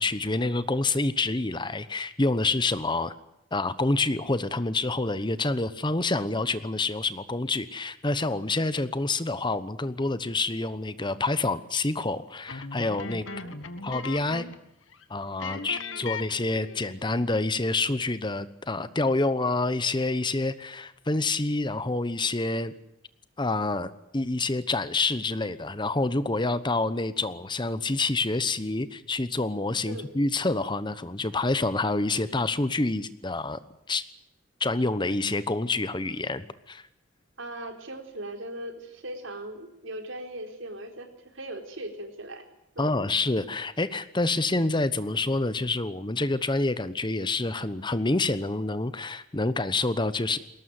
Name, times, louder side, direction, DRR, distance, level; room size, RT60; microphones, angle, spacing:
voice 1, 0.0-3.1 3.5-13.3 13.8-14.4 15.1-22.7 23.4-33.6 33.9-34.0 34.6-36.8 42.8-50.4, left 2 dB, 25° left, 14 dB, 1.0 m, -27 dB
sound 1, 12.5-14.7 14.9-15.0 15.4-17.0, left 4 dB, 90° left, 1.7 m, -38 dB
voice 2, 13.3-14.0 15.5-16.2 29.8-30.1 37.4-42.5 42.8-43.1, right 1 dB, 80° right, 5 dB, 4.2 m, -40 dB
21.5 x 18.5 x 9.6 m, 0.85 s
head